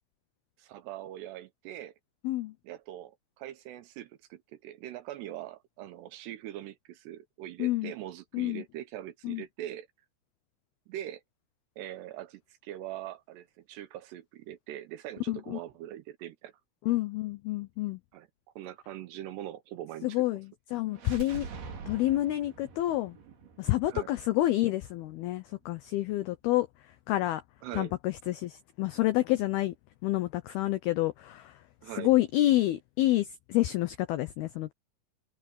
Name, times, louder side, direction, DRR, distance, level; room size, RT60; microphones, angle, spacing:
voice 1, 0.6-1.9 2.6-9.9 10.9-11.2 11.8-16.5 16.9-17.0 18.1-18.3 18.6-20.2 23.9-24.1 27.6-27.9 31.8-32.1, right 12 dB, 75° right, 2.7 m, -42 dB
voice 2, 7.6-7.9 8.3-8.6 9.2-9.4 15.3-15.6 16.9-18.0 20.0-21.5 21.9-23.2 23.6-26.7 27.1-27.4 27.8-29.7 30.0-31.6 32.0-34.7, left 16 dB, 85° left, 2.2 m, -28 dB
sound 1, 20.9-24.8, right 5 dB, 55° right, 5.2 m, -45 dB
omnidirectional pair, 5.5 m